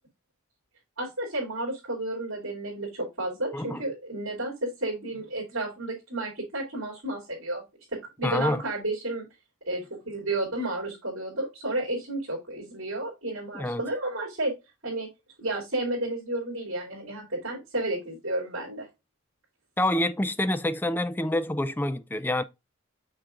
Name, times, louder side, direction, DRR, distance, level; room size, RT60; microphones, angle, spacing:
voice 1, 1.0-7.6 7.9-9.2 9.7-14.5 14.8-15.1 15.4-18.9, right 2 dB, 70° right, 3.0 m, -32 dB
voice 2, 8.2-8.6 13.5-13.8 19.8-22.4, left 1 dB, 10° left, 0.3 m, -27 dB
6.3 x 6.0 x 2.5 m
head